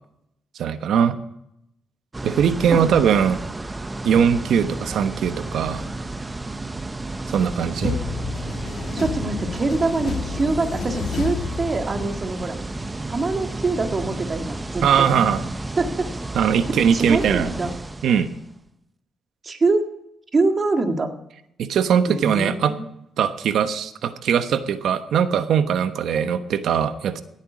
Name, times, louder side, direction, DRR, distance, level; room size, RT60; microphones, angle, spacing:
voice 1, 0.6-1.2 2.2-3.4 4.0-5.9 7.3-7.9 14.8-15.4 16.3-17.5 18.0-18.3 21.6-22.8 23.2-27.2, right 8 dB, 70° right, 10 dB, 1.1 m, -20 dB
sound 1, 2.1-18.5, right 2 dB, 20° right, 0.8 m, -32 dB
sound 2, 7.8-12.3, left 6 dB, 65° left, 2.2 m, -31 dB
voice 2, 8.9-12.6 13.1-15.1 15.8-16.1 16.8-17.7 19.4-19.9 20.3-21.1 22.1-22.9, right 3 dB, 35° right, 5 dB, 2.0 m, -24 dB
17.0 x 9.1 x 5.2 m, 0.80 s
cardioid pair, 90°, 0 cm